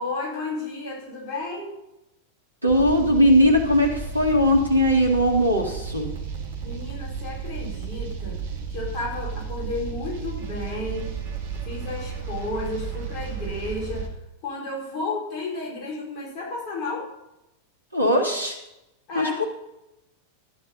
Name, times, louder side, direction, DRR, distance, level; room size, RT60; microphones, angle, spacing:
voice 1, 0.0-1.8 6.6-8.4 8.7-11.1 11.6-14.1 14.4-17.1 19.1-19.3, left 2 dB, 40° left, -3 dB, 5.4 m, -32 dB
voice 2, 2.6-6.1 17.9-18.5 19.1-19.3, equal, 85° right, 2 dB, 2.1 m, -19 dB
sound 1, 2.7-14.1, right 5 dB, 55° right, 2.1 m, -33 dB
13.5 x 10.5 x 4.2 m, 0.90 s
figure-of-eight pair, 90°, 0 cm